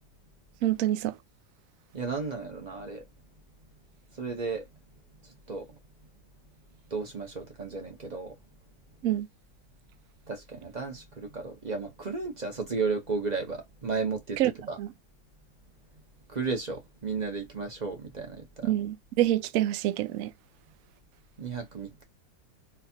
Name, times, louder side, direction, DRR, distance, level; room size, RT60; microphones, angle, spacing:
voice 1, 0.6-1.2 9.0-9.3 14.4-14.5 14.8-14.9 18.6-20.3, right 14 dB, 85° right, 0.7 m, -26 dB
voice 2, 1.9-3.0 4.2-4.7 5.5-5.7 6.9-8.3 10.3-14.4 14.7-14.8 16.3-18.7 21.4-22.0, right 4 dB, 35° right, 0.7 m, -33 dB
4.3 x 2.6 x 2.8 m
omnidirectional pair, 2.1 m